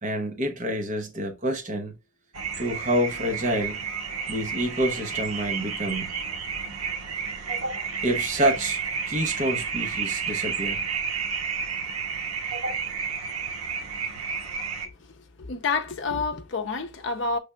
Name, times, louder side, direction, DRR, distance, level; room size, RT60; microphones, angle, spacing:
voice 1, 0.0-1.9 2.6-3.8 4.3-6.1 8.0-8.8 9.1-10.8 14.0-14.1, right 1 dB, 35° right, 0.8 m, -27 dB
sound 1, 2.3-14.9, right 6 dB, 90° right, 0.9 m, -31 dB
voice 2, 15.4-17.4, left 4 dB, 55° left, 0.6 m, -28 dB
5.4 x 3.4 x 2.2 m
head